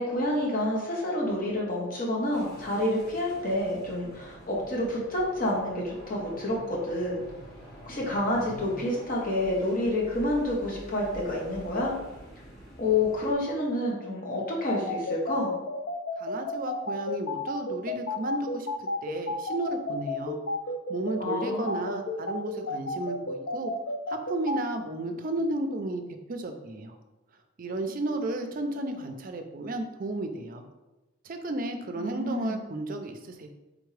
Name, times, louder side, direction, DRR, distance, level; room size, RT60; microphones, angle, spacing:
voice 1, 0.0-7.2 7.9-11.9 12.8-15.5 21.2-21.9 32.0-32.6, left 1 dB, 45° left, -3 dB, 1.1 m, -28 dB
sound 1, 2.3-13.3, equal, 20° left, 1.5 m, -47 dB
sound 2, 14.7-24.6, left 2 dB, 75° left, 0.4 m, -32 dB
voice 2, 16.2-18.7 19.0-20.4 20.9-23.7 24.1-26.0 26.3-27.0 27.6-30.6 31.2-33.5, right 2 dB, 45° right, 6 dB, 0.4 m, -33 dB
3.7 x 3.5 x 3.2 m, 1.1 s
head